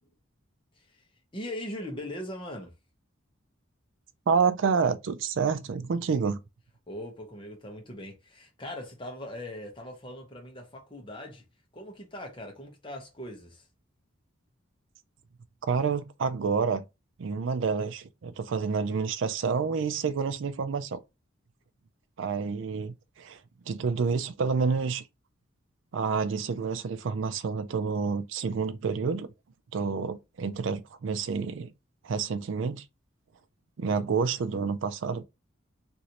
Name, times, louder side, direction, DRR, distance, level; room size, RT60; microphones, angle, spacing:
voice 1, 1.3-2.7 6.9-11.4 11.7-13.6, left 1 dB, 25° left, 0.9 m, -40 dB
voice 2, 4.3-6.4 15.7-16.8 17.2-21.0 22.2-23.4 23.7-25.0 25.9-29.3 29.7-31.7 32.0-32.8 33.8-35.2, right 5 dB, 65° right, 0.4 m, -28 dB
3.0 x 2.6 x 2.8 m
head